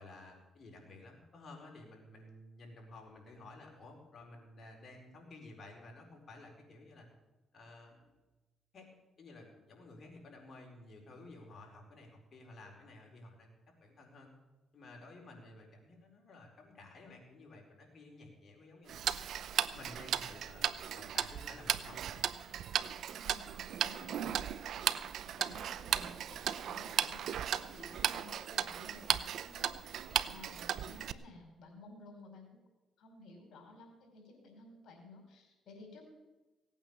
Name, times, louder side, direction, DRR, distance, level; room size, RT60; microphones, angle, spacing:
voice 1, 0.0-7.1 7.5-8.1 8.7-8.9 9.2-14.3 14.7-19.0 19.7-20.7 20.9-22.2, left 2 dB, 45° left, 0 dB, 4.5 m, -53 dB
Tick-tock, 18.9-31.1, right 9 dB, 70° right, 0.6 m, -36 dB
voice 2, 23.1-29.7 30.3-32.6 33.0-36.0, left 2 dB, 65° left, 2 dB, 5.1 m, -55 dB
17.5 x 9.1 x 7.0 m, 1.1 s
cardioid pair, 90°, 0 cm